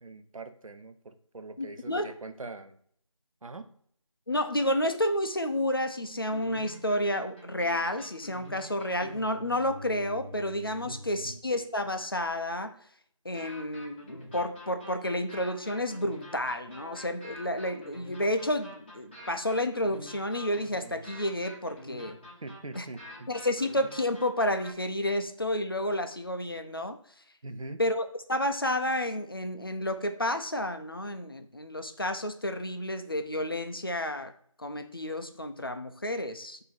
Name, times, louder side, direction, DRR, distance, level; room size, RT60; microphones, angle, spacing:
voice 1, 0.0-2.8 3.4-3.7 10.8-11.0 11.2-11.4 22.4-23.3 27.4-27.8, right 2 dB, 80° right, 8 dB, 0.7 m, -42 dB
voice 2, 1.6-2.1 4.3-12.8 13.2-22.2 22.8-22.9 23.3-27.0 27.8-34.3 34.6-36.6, left 1 dB, 45° left, 8 dB, 0.4 m, -30 dB
sound 1, 6.2-11.5 13.3-24.7, equal, 20° left, 0.9 m, -47 dB
4.1 x 2.7 x 4.4 m, 0.64 s
figure-of-eight pair, 175°, 17 cm